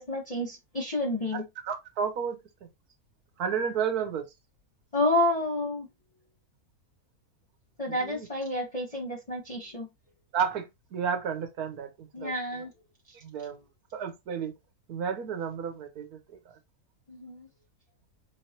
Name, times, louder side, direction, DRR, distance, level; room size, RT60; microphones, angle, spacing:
voice 1, 0.0-1.4 4.9-5.9 7.8-9.9 12.1-12.7 17.1-17.5, left 1 dB, 25° left, 1.1 m, -29 dB
voice 2, 1.3-2.4 3.4-4.2 7.9-8.3 10.3-12.7 13.1-13.6 13.9-14.5 14.9-16.2 16.4-16.6, right 7 dB, 80° right, 1.5 m, -32 dB
5.5 x 3.2 x 2.9 m
omnidirectional pair, 1.6 m